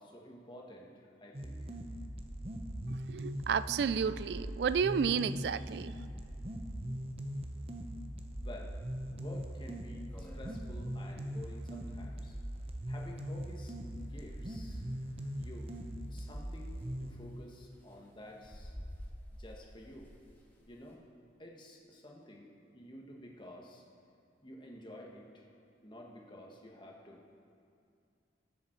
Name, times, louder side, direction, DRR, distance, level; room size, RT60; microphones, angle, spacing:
voice 1, 0.0-1.7 8.4-8.7 9.1-12.4 12.9-15.8 16.1-18.7 19.4-20.1 20.7-21.0 21.4-23.8 24.4-25.5 25.8-27.2, left 1 dB, 25° left, -1 dB, 1.3 m, -51 dB
sound 1, 1.3-17.1, equal, 30° right, 0.8 m, -41 dB
voice 2, 3.1-5.9, right 6 dB, 60° right, 16 dB, 0.3 m, -31 dB
sound 2, 5.9-6.0 6.3-6.4 6.7-6.8 7.4-7.6 8.1-8.2 8.7-8.8 9.1-9.2 9.7-9.8 9.9-20.9, equal, 10° left, 1.5 m, -53 dB
20.0 x 7.2 x 4.5 m, 2.4 s
head